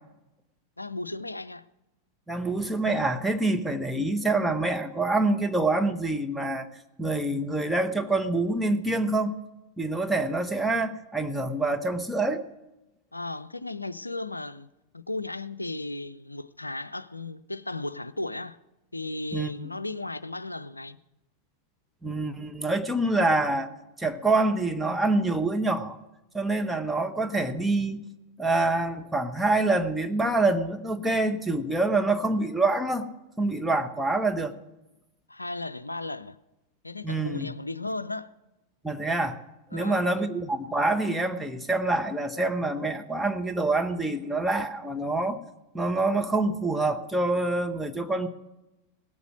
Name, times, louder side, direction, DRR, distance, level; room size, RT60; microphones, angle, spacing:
voice 1, 0.8-1.7 13.1-14.7 14.9-18.6 18.9-21.0 35.3-36.4 36.8-38.3 39.7-40.3, left 2 dB, 85° left, 0.4 m, -35 dB
voice 2, 2.3-6.7 7.0-9.4 9.8-12.4 19.3-19.5 22.0-23.7 24.0-26.0 26.3-28.0 28.4-33.1 33.4-34.5 37.0-37.5 38.8-39.4 39.7-45.4 45.7-48.3, right 2 dB, 5° right, 1.0 m, -26 dB
18.0 x 8.1 x 6.3 m
figure-of-eight pair, 90°, 0 cm